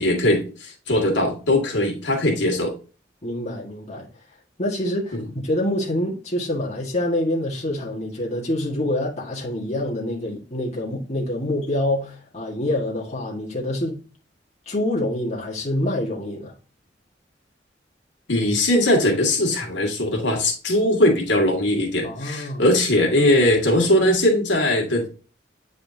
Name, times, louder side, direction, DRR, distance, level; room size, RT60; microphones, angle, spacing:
voice 1, 0.0-2.7 5.1-5.2 18.3-25.1, left 1 dB, 80° left, 2.0 m, -20 dB
voice 2, 3.2-4.1 4.6-5.2 5.4-14.0 14.7-16.5 22.0-22.6, left 1 dB, 40° left, 1.7 m, -26 dB
8.6 x 4.2 x 2.7 m
head